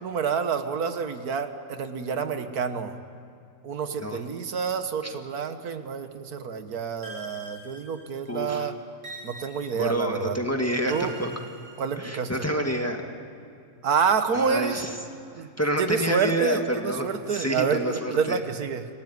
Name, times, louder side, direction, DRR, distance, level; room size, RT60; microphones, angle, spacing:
voice 1, 0.0-3.0 3.6-8.7 9.2-10.4 10.9-11.1 11.8-12.5 13.8-14.8 15.4-15.5 15.8-18.9, right 6 dB, 80° right, 9 dB, 1.7 m, -28 dB
sound 1, 7.0-8.4 9.0-10.2 10.9-12.4, right 3 dB, 65° right, 3.1 m, -44 dB
voice 2, 8.3-8.7 9.7-11.3 12.0-13.0 14.3-15.0 15.4-18.4, equal, 10° left, 3 dB, 1.7 m, -28 dB
28.0 x 18.0 x 9.5 m, 2.4 s
omnidirectional pair, 1.6 m